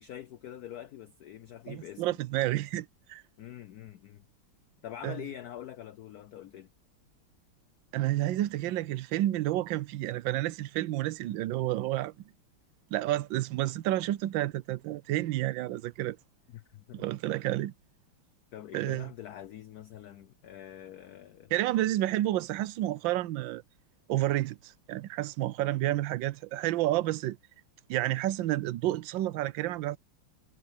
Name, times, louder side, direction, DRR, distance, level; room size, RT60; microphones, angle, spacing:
voice 1, 0.0-2.2 3.4-4.2 4.8-6.7 16.5-17.0 18.5-21.5, left 11 dB, 90° left, 0.8 m, -45 dB
voice 2, 1.7-3.2 5.0-5.2 7.9-12.1 12.9-16.2 16.9-17.7 18.7-19.1 21.5-23.6 24.1-27.4 27.9-30.0, right 15 dB, 70° right, 1.3 m, -30 dB
omnidirectional pair, 2.3 m